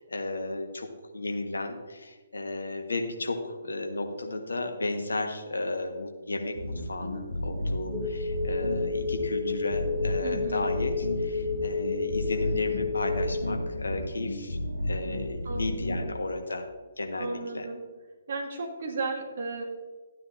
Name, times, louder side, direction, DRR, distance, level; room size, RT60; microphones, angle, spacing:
voice 1, 0.0-14.6 14.8-16.7 17.0-17.6, left 2 dB, 70° left, 4 dB, 1.4 m, -34 dB
sound 1, 6.5-16.0, left 1 dB, 85° left, 2.9 m, -33 dB
sound 2, 7.9-13.2, left 4 dB, 25° right, 2.7 m, -31 dB
voice 2, 10.2-10.7 15.4-16.1 17.2-17.8 18.3-19.6, right 3 dB, 55° right, 1 dB, 2.1 m, -34 dB
13.5 x 9.5 x 2.7 m, 1.3 s
figure-of-eight pair, 130°, 0 cm